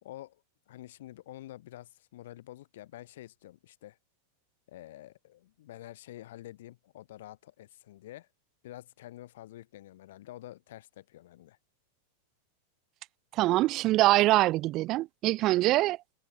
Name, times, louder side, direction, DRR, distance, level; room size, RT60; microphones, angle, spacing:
voice 1, 0.0-4.0 4.7-8.3 8.6-11.6, left 14 dB, 55° left, 2.5 m, -48 dB
voice 2, 13.3-16.0, right 17 dB, 35° right, 0.5 m, -24 dB
figure-of-eight pair, 90°, 0 cm